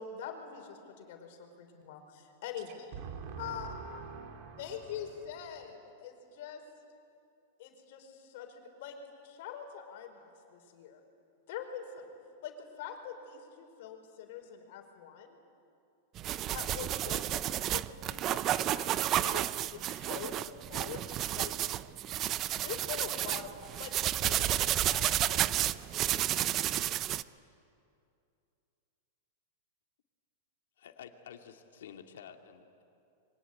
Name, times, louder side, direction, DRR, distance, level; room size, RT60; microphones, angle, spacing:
voice 1, 0.0-2.9 3.4-3.7 4.6-6.6 7.6-11.0 11.5-12.1 12.4-15.4 16.3-19.4 19.7-20.4 20.7-21.5 22.5-27.0, left 8 dB, 60° left, 5 dB, 5.0 m, -44 dB
voice 2, 2.9-5.3, right 6 dB, 50° right, 3 dB, 3.2 m, -45 dB
sound 1, 16.2-27.2, right 13 dB, 35° right, 0.6 m, -31 dB
voice 3, 30.8-32.8, left 8 dB, 80° left, 4 dB, 2.4 m, -50 dB
26.0 x 23.5 x 9.7 m, 2.5 s
supercardioid pair, 135°, 0 cm